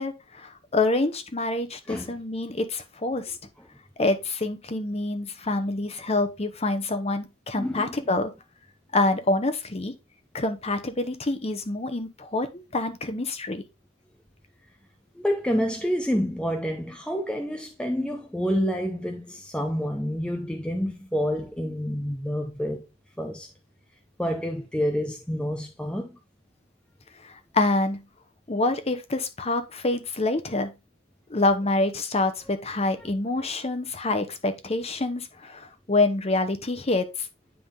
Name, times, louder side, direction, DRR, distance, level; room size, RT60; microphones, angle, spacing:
voice 1, 0.0-3.3 4.0-8.3 8.9-9.9 10.3-13.6 27.5-28.0 28.5-30.7 31.3-37.1, left 2 dB, 30° left, 0.9 m, -26 dB
voice 2, 7.6-7.9 15.2-22.8 23.2-23.5 24.2-26.1, equal, 5° left, 0.6 m, -28 dB
9.5 x 3.6 x 3.6 m
head